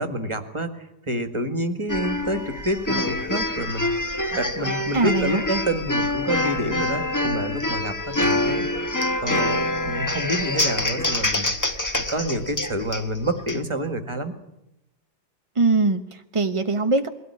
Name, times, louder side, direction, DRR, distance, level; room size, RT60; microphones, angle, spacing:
voice 1, 0.0-8.7 9.2-11.7 12.0-14.3, right 1 dB, 15° right, 8 dB, 1.8 m, -28 dB
sound 1, 1.9-13.6, left 1 dB, 15° left, 0.9 m, -26 dB
voice 2, 4.9-5.4 15.6-17.1, right 3 dB, 40° right, 6 dB, 0.4 m, -22 dB
22.0 x 17.0 x 9.9 m, 0.88 s
omnidirectional pair, 2.1 m